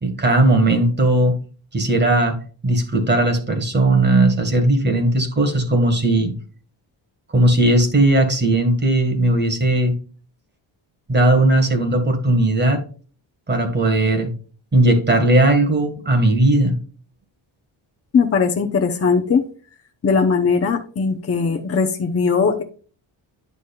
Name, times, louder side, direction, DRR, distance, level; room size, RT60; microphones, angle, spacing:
voice 1, 0.0-1.4 1.7-2.4 2.6-6.3 7.3-9.9 11.1-12.8 13.5-14.3 14.7-16.7, right 1 dB, 20° right, 4 dB, 1.7 m, -17 dB
voice 2, 18.1-19.4 20.0-22.6, left 5 dB, 30° left, 4 dB, 0.8 m, -19 dB
9.6 x 6.1 x 2.4 m, 0.39 s
wide cardioid pair, 165°, 48 cm